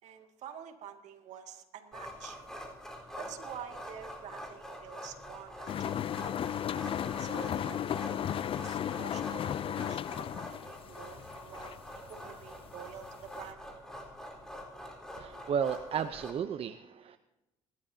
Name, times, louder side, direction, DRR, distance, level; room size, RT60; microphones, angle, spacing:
voice 1, 0.0-2.4 3.2-6.1 7.2-8.1 8.5-13.6, right 8 dB, 70° right, 5 dB, 2.2 m, -48 dB
sound 1, 1.9-16.3, equal, 5° left, 4.2 m, -45 dB
sound 2, 5.7-12.5 12.8-13.5, left 10 dB, 45° left, 0.4 m, -35 dB
voice 2, 15.2-17.2, right 7 dB, 50° right, 10 dB, 0.7 m, -33 dB
27.0 x 12.5 x 2.8 m, 1.0 s
supercardioid pair, 75°, 12 cm